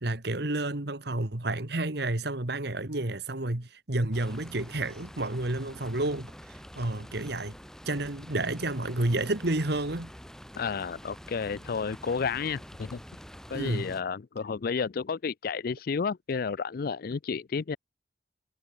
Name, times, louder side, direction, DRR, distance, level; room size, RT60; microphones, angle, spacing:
voice 1, 0.0-7.5 7.9-10.1 13.5-13.9, right 2 dB, 60° right, 2.0 m, -30 dB
sound 1, 4.1-14.0, equal, 5° left, 5.3 m, -47 dB
voice 2, 10.6-13.0 13.5-17.8, left 5 dB, 50° left, 0.4 m, -31 dB
head